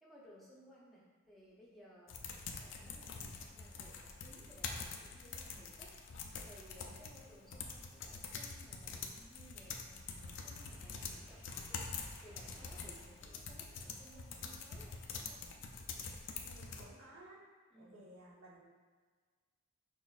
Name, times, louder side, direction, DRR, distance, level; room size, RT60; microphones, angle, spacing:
voice 1, 0.0-15.4 17.7-18.0, equal, ahead, -7 dB, 0.7 m, -60 dB
sound 1, 2.1-16.8, left 5 dB, 55° left, 0.4 m, -46 dB
sound 2, 9.1-16.2 16.6-17.0, equal, 50° right, 1.1 m, -61 dB
voice 2, 16.4-17.4 17.8-18.7, right 1 dB, 70° right, -5 dB, 0.8 m, -57 dB
6.0 x 2.6 x 2.4 m, 1.5 s
head